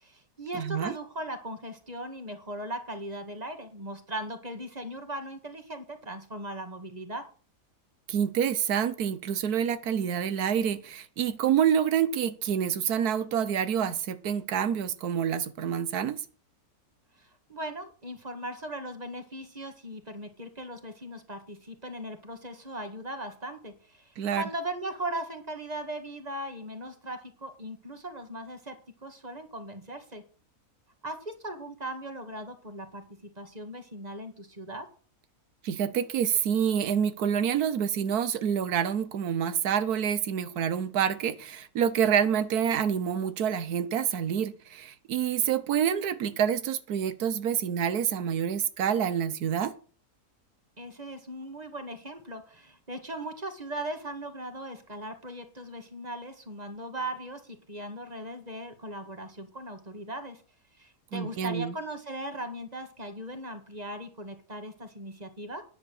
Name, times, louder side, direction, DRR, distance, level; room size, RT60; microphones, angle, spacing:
voice 1, 0.0-7.2 17.2-30.2 31.0-34.9 50.8-60.4 60.8-65.6, right 1 dB, 25° right, 1.9 m, -38 dB
voice 2, 0.5-0.9 8.1-16.2 24.2-24.4 35.6-49.7 61.1-61.7, right 8 dB, 90° right, 1.4 m, -27 dB
10.5 x 8.9 x 6.5 m
omnidirectional pair, 1.6 m